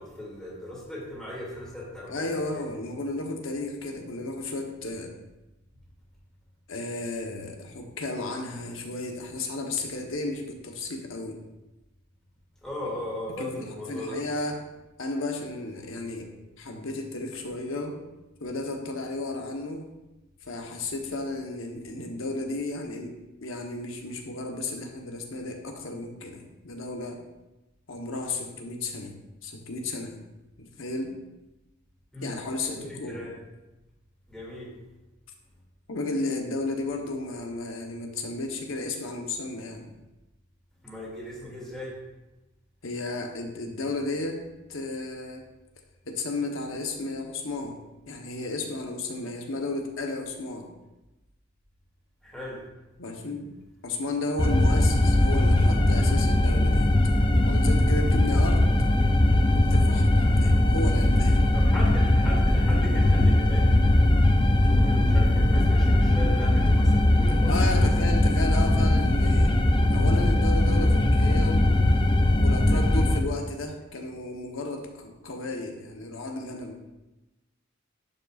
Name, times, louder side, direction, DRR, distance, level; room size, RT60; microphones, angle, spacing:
voice 1, 0.0-2.7 12.6-14.2 32.1-33.3 34.3-34.7 40.8-42.0 52.2-52.6 61.5-64.0 64.6-67.9 68.2-68.4, left 1 dB, 5° left, -6 dB, 2.4 m, -38 dB
voice 2, 2.1-5.1 6.7-11.4 13.3-14.6 15.0-16.3 16.6-18.0 18.4-19.9 20.4-23.1 23.4-27.2 27.9-29.2 29.4-30.2 30.6-31.2 32.2-33.3 35.9-39.9 42.8-44.4 44.7-45.4 46.0-47.8 48.1-50.7 53.0-53.5 53.8-56.9 57.5-58.7 59.5-61.5 67.5-69.5 69.9-71.7 72.4-76.8, left 2 dB, 75° left, 2 dB, 1.0 m, -33 dB
sound 1, 54.4-73.2, left 1 dB, 25° left, 0.5 m, -20 dB
11.0 x 5.4 x 2.4 m, 1.0 s
head